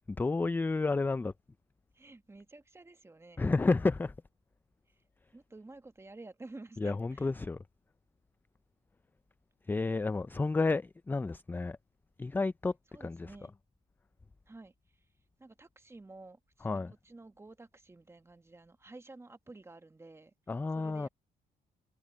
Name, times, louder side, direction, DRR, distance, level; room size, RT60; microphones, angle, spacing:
voice 1, 0.2-1.3 3.4-4.1 6.8-7.6 9.7-11.8 12.2-12.7 13.0-13.2 16.6-16.9 20.5-21.1, left 3 dB, 10° left, 0.3 m, -30 dB
voice 2, 1.9-3.5 5.3-7.3 12.9-13.5 14.5-14.7 15.4-20.3 20.7-21.1, right 2 dB, 15° right, 1.4 m, -51 dB
cardioid pair, 95°, 17 cm